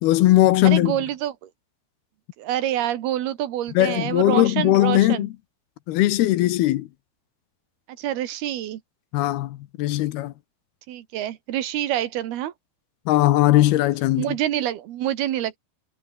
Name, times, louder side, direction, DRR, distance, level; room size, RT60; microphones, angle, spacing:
voice 1, 0.0-1.0 3.8-5.3 5.9-6.9 9.1-10.3 13.1-14.3, left 15 dB, 75° left, 2.8 m, -19 dB
voice 2, 0.6-1.5 2.4-5.3 8.0-8.8 10.9-12.5 14.1-15.6, right 12 dB, 75° right, 3.3 m, -27 dB
omnidirectional pair, 4.8 m